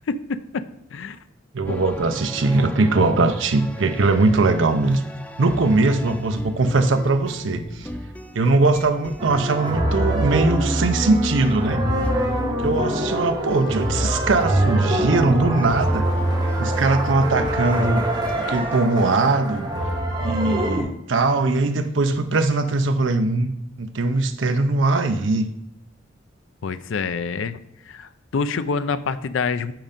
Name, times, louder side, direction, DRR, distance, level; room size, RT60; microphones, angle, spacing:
voice 1, 0.1-0.6 0.9-1.2 1.7-1.9 26.6-27.6 27.9-29.7, left 5 dB, 80° left, 13 dB, 0.4 m, -26 dB
voice 2, 1.5-5.0 5.4-7.9 8.3-11.9 12.6-16.0 16.6-18.1 18.4-19.7 20.2-23.5 23.8-25.5, right 3 dB, 75° right, 7 dB, 0.6 m, -20 dB
sound 1, 1.7-18.8, equal, 5° left, 0.5 m, -37 dB
sound 2, 9.2-20.8, right 1 dB, 25° right, 1.6 m, -24 dB
7.6 x 5.3 x 5.2 m, 0.83 s
head